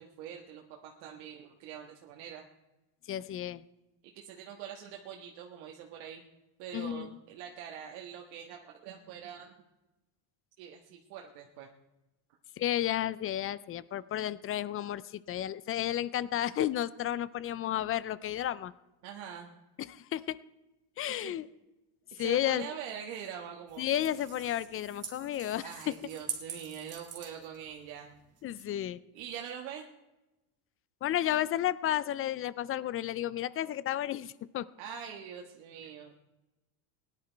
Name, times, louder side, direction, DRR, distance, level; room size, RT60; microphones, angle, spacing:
voice 1, 0.0-2.4 4.1-6.3 6.6-9.5 10.6-11.7 19.0-19.5 21.1-21.4 22.1-23.8 25.6-28.1 29.1-29.9 34.8-36.2, right 8 dB, 80° right, 1 dB, 1.5 m, -44 dB
voice 2, 3.1-3.6 6.7-7.2 12.6-18.7 19.8-20.4 21.0-21.5 22.2-22.7 23.8-25.9 28.4-29.0 31.0-34.7, left 12 dB, 30° left, 19 dB, 0.4 m, -32 dB
sound 1, 23.7-28.8, right 6 dB, 30° right, 2.4 m, -45 dB
17.5 x 10.5 x 4.5 m, 1.0 s
cardioid pair, 135°, 46 cm